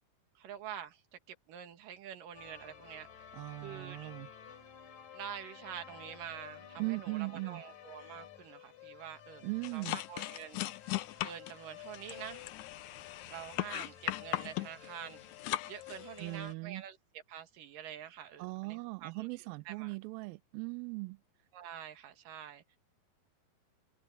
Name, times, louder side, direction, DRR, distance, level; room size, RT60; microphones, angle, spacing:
voice 1, 0.4-1.0 1.5-3.3 3.6-4.2 5.1-10.7 11.2-12.4 13.3-15.2 15.7-19.9 21.5-22.6, right 9 dB, 65° right, 3.2 m, -47 dB
sound 1, 2.3-16.5, left 10 dB, 60° left, 4.5 m, -52 dB
voice 2, 3.3-4.3 6.8-7.6 9.4-10.0 16.2-16.8 18.4-21.2, right 26 dB, 80° right, 2.2 m, -39 dB
sound 2, 9.6-16.4, left 15 dB, 80° left, 1.8 m, -38 dB
omnidirectional pair, 4.3 m